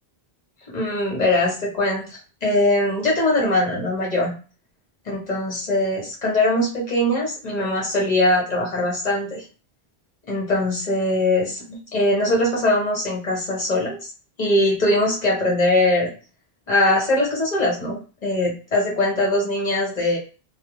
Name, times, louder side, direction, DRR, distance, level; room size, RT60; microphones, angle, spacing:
voice 1, 0.7-4.3 5.1-9.4 10.3-14.1 14.4-16.1 16.7-20.2, left 1 dB, 45° left, -2 dB, 0.9 m, -21 dB
2.4 x 2.2 x 2.9 m, 0.36 s
omnidirectional pair, 1.1 m